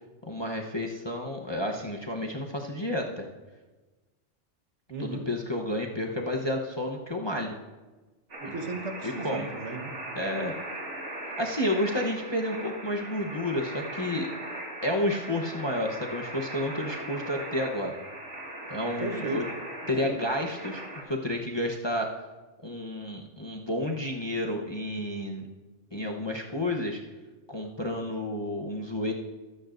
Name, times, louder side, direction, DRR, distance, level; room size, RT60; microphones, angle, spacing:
voice 1, 0.3-3.3 5.0-7.6 8.5-8.6 9.2-9.5 10.2-10.5 11.4-14.3 14.8-18.0 18.7-19.4 19.9-22.1 22.6-25.5 25.9-27.0 27.5-29.1, left 1 dB, 25° left, 0 dB, 0.8 m, -31 dB
voice 2, 4.9-5.3 8.4-9.9 19.0-19.4 20.0-20.2, right 3 dB, 60° right, 4 dB, 1.5 m, -35 dB
sound 1, 8.3-21.0, right 1 dB, 90° right, 2.5 m, -39 dB
23.0 x 8.9 x 2.6 m, 1.2 s
omnidirectional pair, 1.3 m